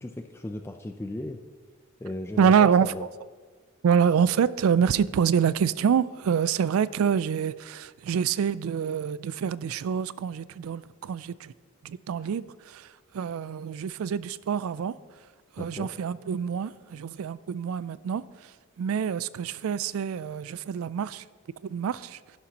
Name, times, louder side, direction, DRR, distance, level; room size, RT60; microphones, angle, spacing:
voice 1, 0.0-1.4 2.0-3.0 15.6-15.9, left 1 dB, 10° left, 0.4 m, -36 dB
voice 2, 2.4-3.1 3.8-11.5 11.8-15.0 15.6-18.5 18.8-21.2 21.6-22.2, right 7 dB, 85° right, 0.3 m, -26 dB
11.5 x 11.0 x 2.9 m
head